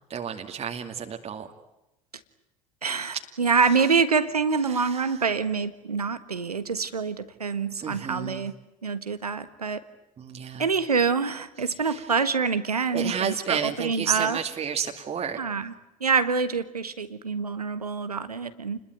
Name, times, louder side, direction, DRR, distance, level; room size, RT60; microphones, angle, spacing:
voice 1, 0.1-1.5 4.7-5.2 7.8-8.4 10.2-10.7 11.8-12.0 12.9-15.4, right 7 dB, 30° right, 3 dB, 2.4 m, -31 dB
voice 2, 2.8-8.5 8.8-9.8 10.6-14.4 15.4-15.7 16.0-18.8, right 5 dB, 85° right, 12 dB, 1.5 m, -26 dB
29.5 x 21.0 x 9.3 m, 0.92 s
figure-of-eight pair, 65°, 19 cm